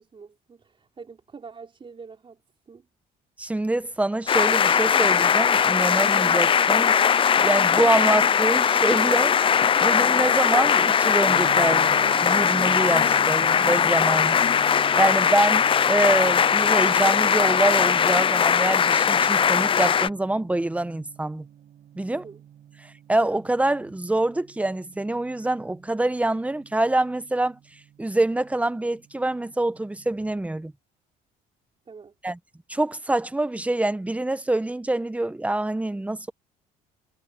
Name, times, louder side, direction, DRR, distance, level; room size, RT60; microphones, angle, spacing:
voice 1, 0.0-2.4 2.7-2.9 22.1-22.4 31.9-32.1, right 5 dB, 30° right, 3.9 m, -45 dB
voice 2, 3.4-6.9 7.4-9.4 9.8-11.9 12.2-14.4 15.0-21.4 22.0-22.2 22.8-27.6 28.0-30.7 32.2-32.4 32.7-36.3, right 2 dB, 10° right, 1.1 m, -25 dB
sound 1, 4.3-20.1, left 7 dB, 30° left, 0.5 m, -20 dB
Gong, 11.3-30.2, right 10 dB, 60° right, 6.5 m, -44 dB
cardioid pair, 110°, 17 cm